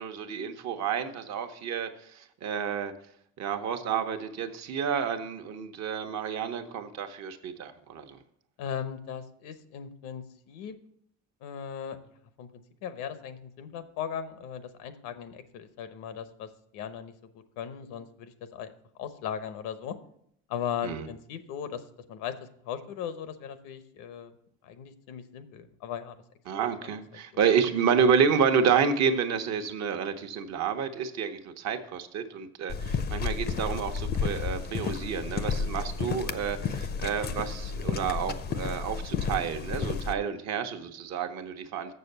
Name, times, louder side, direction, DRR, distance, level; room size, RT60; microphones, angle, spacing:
voice 1, 0.0-2.9 3.4-8.2 20.8-21.1 26.5-41.9, right 7 dB, 60° right, 6 dB, 1.0 m, -29 dB
voice 2, 8.6-10.8 11.4-12.0 12.4-17.1 17.6-18.7 19.0-20.0 20.5-21.8 22.1-24.4 24.6-26.2 26.5-27.0, left 8 dB, 85° left, 11 dB, 0.9 m, -38 dB
sound 1, 32.7-40.1, left 5 dB, 35° left, 0.5 m, -32 dB
6.7 x 6.7 x 6.7 m, 0.71 s
cardioid pair, 120°, 31 cm